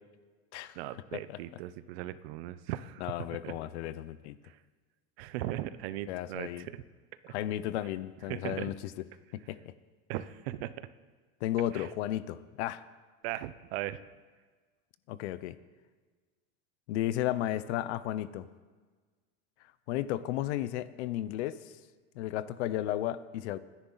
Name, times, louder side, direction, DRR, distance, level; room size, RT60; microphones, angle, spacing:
voice 1, 0.8-3.2 3.4-3.6 4.4-4.6 5.2-6.8 7.2-7.3 8.3-8.7 10.1-10.9 11.7-11.9 13.2-14.0, right 14 dB, 60° right, 15 dB, 0.8 m, -38 dB
voice 2, 3.0-4.4 6.1-6.7 7.3-8.8 9.3-9.6 11.4-12.8 15.1-15.6 16.9-18.5 19.9-21.7 22.1-23.6, left 13 dB, 70° left, 15 dB, 0.8 m, -34 dB
25.5 x 10.5 x 4.0 m, 1.4 s
supercardioid pair, 160°, 35 cm